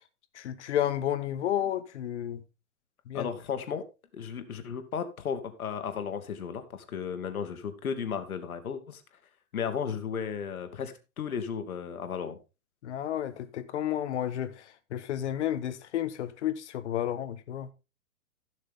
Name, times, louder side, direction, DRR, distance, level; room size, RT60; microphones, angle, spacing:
voice 1, 0.3-2.4 3.1-3.3 12.8-14.5 14.9-17.7, left 11 dB, 55° left, 1.4 m, -31 dB
voice 2, 3.1-3.8 4.1-9.0 9.5-12.4, left 7 dB, 80° left, 2.3 m, -34 dB
16.0 x 6.5 x 3.7 m
hypercardioid pair, 150°, 43 cm